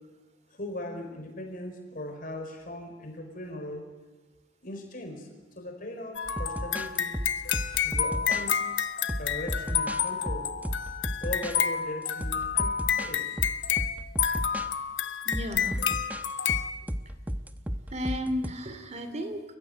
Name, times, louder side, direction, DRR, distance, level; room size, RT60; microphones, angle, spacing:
voice 1, 0.5-3.8 4.6-5.3 5.5-7.1 7.8-8.6 9.2-10.5 11.2-13.4, left 1 dB, 50° left, 4 dB, 4.9 m, -39 dB
sound 1, 6.2-16.7, left 8 dB, 85° left, 1.3 m, -29 dB
sound 2, 6.3-8.5 9.1-11.6 12.2-13.1 13.4-14.7 15.3-18.5, equal, 10° right, 1.0 m, -34 dB
voice 2, 15.2-15.8 17.9-19.4, equal, 35° right, 8 dB, 2.7 m, -33 dB
29.0 x 15.5 x 9.4 m, 1.2 s
head